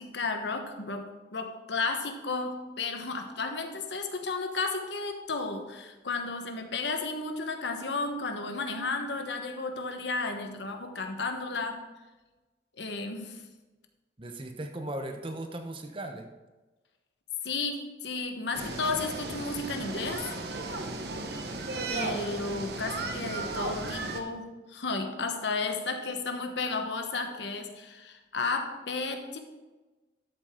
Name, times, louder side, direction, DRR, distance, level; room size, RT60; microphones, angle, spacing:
voice 1, 0.0-11.8 12.7-13.5 17.4-20.3 21.9-29.4, left 3 dB, 85° left, 5 dB, 1.2 m, -33 dB
voice 2, 14.2-16.3, right 1 dB, 30° right, 6 dB, 0.8 m, -37 dB
sound 1, 18.5-24.2, right 2 dB, 70° right, 1.0 m, -35 dB
12.0 x 7.7 x 3.7 m, 1.2 s
head